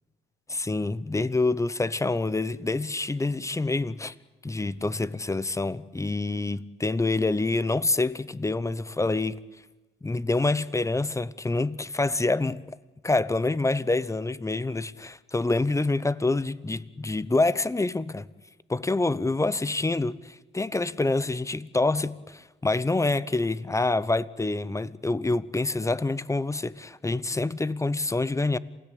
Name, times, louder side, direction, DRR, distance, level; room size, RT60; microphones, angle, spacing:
voice 1, 0.5-4.1 4.4-9.4 10.0-12.6 13.0-18.2 18.7-28.6, left 2 dB, 15° left, 0.9 m, -26 dB
28.0 x 17.5 x 8.5 m
cardioid pair, 90°, 20 cm